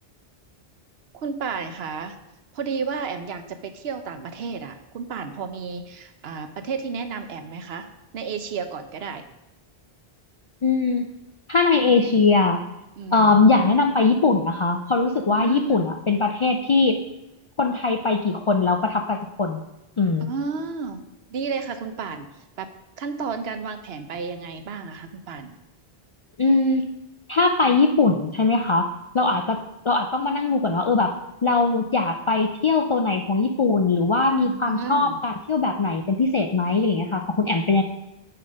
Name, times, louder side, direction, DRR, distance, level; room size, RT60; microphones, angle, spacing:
voice 1, 1.1-2.2 2.5-7.9 8.1-9.2 13.0-13.4 15.3-16.0 20.2-21.0 21.3-22.3 22.6-22.7 23.0-25.6 29.2-29.4 34.4-35.2, right 5 dB, 80° right, 9 dB, 1.0 m, -32 dB
voice 2, 10.6-11.1 11.5-12.6 13.1-17.0 17.6-19.6 20.0-20.3 26.4-26.8 27.3-31.1 31.4-37.8, left 3 dB, 50° left, 4 dB, 0.3 m, -21 dB
8.4 x 4.5 x 5.1 m, 0.93 s
omnidirectional pair, 1.0 m